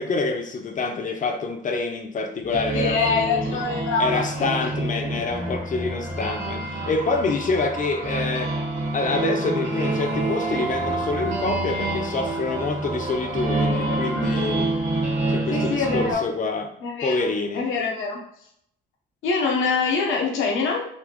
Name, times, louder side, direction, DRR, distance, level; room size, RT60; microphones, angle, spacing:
voice 1, 0.0-3.6 4.0-8.5 8.9-14.7 15.3-16.7 17.0-17.7, left 3 dB, 40° left, 5 dB, 0.6 m, -27 dB
sound 1, 2.5-16.1, right 2 dB, 75° right, 1.4 m, -27 dB
voice 2, 2.7-4.7 5.0-5.1 13.6-14.0 15.5-16.2 16.8-17.3 17.5-18.2 19.2-20.8, left 4 dB, 85° left, -1 dB, 1.0 m, -25 dB
4.1 x 2.7 x 2.9 m, 0.73 s
cardioid pair, 90°, 20 cm